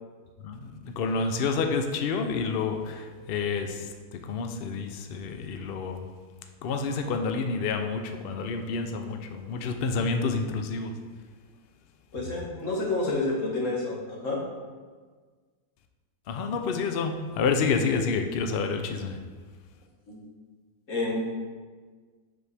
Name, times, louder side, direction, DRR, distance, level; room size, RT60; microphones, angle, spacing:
voice 1, 0.4-6.1 6.6-11.0 16.3-19.2, left 4 dB, 80° left, 6 dB, 0.5 m, -29 dB
voice 2, 12.1-14.4 20.1-20.2 20.9-21.2, left 2 dB, 55° left, -3 dB, 1.8 m, -29 dB
7.1 x 6.4 x 3.4 m, 1.5 s
omnidirectional pair, 1.7 m